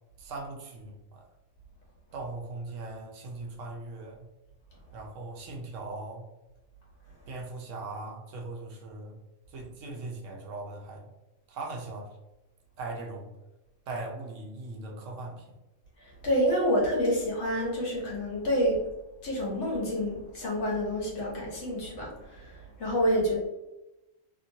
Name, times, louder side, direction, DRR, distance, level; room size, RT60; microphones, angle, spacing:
voice 1, 0.2-1.2 2.1-4.3 4.9-6.3 7.3-9.2 9.5-11.1 11.5-12.2 12.8-13.3 13.9-15.4, right 2 dB, 80° right, 1 dB, 1.0 m, -39 dB
voice 2, 16.0-18.8 19.2-23.3, equal, 65° left, -3 dB, 1.2 m, -28 dB
2.8 x 2.8 x 2.6 m, 0.99 s
omnidirectional pair, 1.3 m